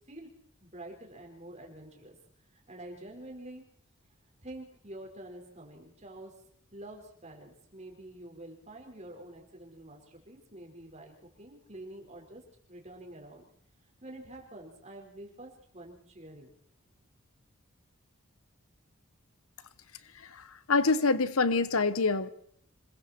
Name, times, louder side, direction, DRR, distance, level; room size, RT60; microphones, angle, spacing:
voice 1, 0.6-2.2 2.5-3.6 4.4-6.3 6.7-12.4 12.7-13.4 14.0-16.5, right 1 dB, 30° right, 0 dB, 4.9 m, -47 dB
voice 2, 20.2-22.3, left 3 dB, 85° left, 14 dB, 1.1 m, -26 dB
27.0 x 21.5 x 4.5 m, 0.67 s
head